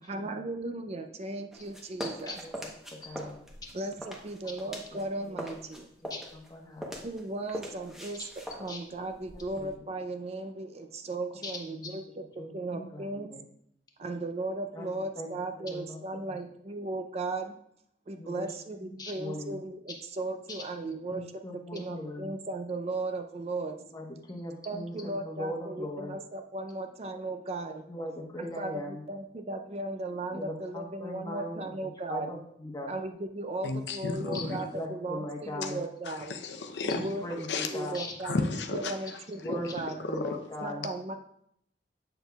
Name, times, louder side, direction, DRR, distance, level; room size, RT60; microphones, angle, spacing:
voice 1, 0.0-2.4 3.7-5.9 7.0-8.2 8.5-13.3 14.0-17.6 18.1-21.2 21.7-23.8 24.6-27.9 28.6-32.4 32.9-36.3 36.8-37.2 37.7-40.0 40.6-41.1, right 2 dB, 35° right, 6 dB, 0.5 m, -36 dB
sound 1, 1.5-5.0 5.3-9.8, equal, 5° right, 0.8 m, -42 dB
voice 2, 2.0-3.4 4.9-5.4 6.0-7.0 8.7-8.8 9.6-9.7 11.4-11.9 12.4-13.4 14.7-15.3 15.6-16.2 18.2-18.5 19.0-19.6 20.5-22.3 23.8-26.1 27.9-29.0 30.3-31.7 32.1-32.9 34.2-35.8 37.0-38.1 39.4-39.8 40.0-40.9, left 1 dB, 20° left, 1 dB, 1.0 m, -40 dB
voice 3, 33.6-34.6 35.6-35.7 36.1-37.1 37.5-37.7 38.2-39.0 39.4-39.6 40.0-40.4, left 3 dB, 80° left, 5 dB, 0.6 m, -33 dB
7.8 x 6.7 x 2.3 m, 0.72 s
head